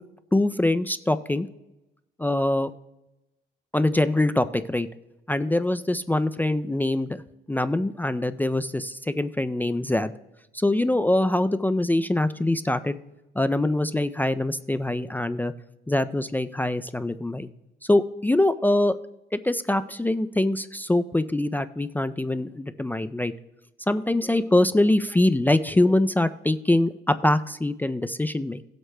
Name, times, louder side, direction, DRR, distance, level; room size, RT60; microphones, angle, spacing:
voice 1, 0.3-1.5 2.2-2.7 3.7-4.9 5.3-7.2 7.5-10.1 10.5-13.0 13.4-15.5 15.9-17.5 17.8-19.0 19.3-23.3 23.9-28.6, left 1 dB, 10° left, 11 dB, 0.4 m, -23 dB
18.5 x 7.8 x 2.2 m, 0.95 s
cardioid pair, 90°, 20 cm